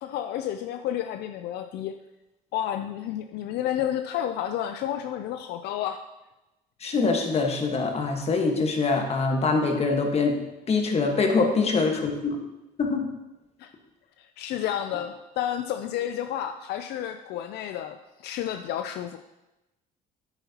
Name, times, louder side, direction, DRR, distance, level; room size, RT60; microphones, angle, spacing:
voice 1, 0.0-2.0 2.5-6.0 13.6-13.7 14.2-19.2, left 11 dB, 75° left, 7 dB, 0.5 m, -31 dB
voice 2, 6.8-10.4 10.7-12.4 12.8-13.1, left 4 dB, 40° left, 3 dB, 1.4 m, -24 dB
9.8 x 8.1 x 2.9 m, 0.98 s
cardioid pair, 110°, 17 cm